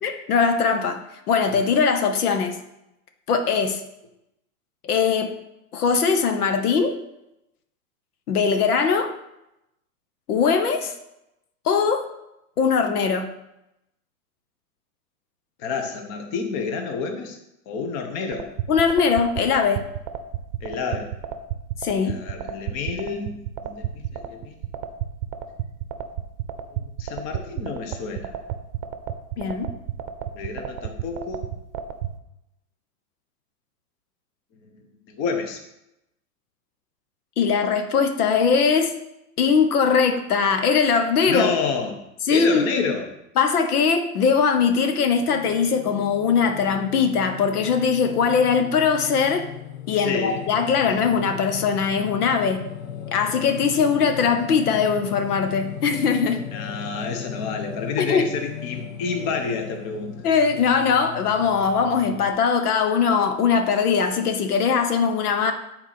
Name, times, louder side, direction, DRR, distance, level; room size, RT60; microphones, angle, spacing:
voice 1, 0.0-2.6 3.3-3.8 4.8-5.4 5.7-6.9 8.3-9.1 10.3-10.9 11.6-12.1 12.6-13.3 18.7-19.9 21.8-22.2 29.4-29.7 37.4-38.9 39.4-41.5 42.2-42.9 43.4-49.5 49.9-52.6 53.1-56.4 58.0-58.3 60.2-65.5, left 6 dB, 85° left, 6 dB, 1.2 m, -21 dB
voice 2, 15.6-17.4 17.7-18.5 20.6-21.1 22.1-24.6 26.7-28.3 30.3-31.5 34.6-35.7 41.3-42.0 42.3-43.1 50.0-50.4 56.5-60.2, left 5 dB, 35° left, 5 dB, 1.1 m, -29 dB
sound 1, 18.3-32.1, right 11 dB, 40° right, 0.7 m, -30 dB
Singing, 45.2-62.3, left 8 dB, 65° left, 1.2 m, -37 dB
7.8 x 4.4 x 6.0 m, 0.86 s
supercardioid pair, 145°, 44 cm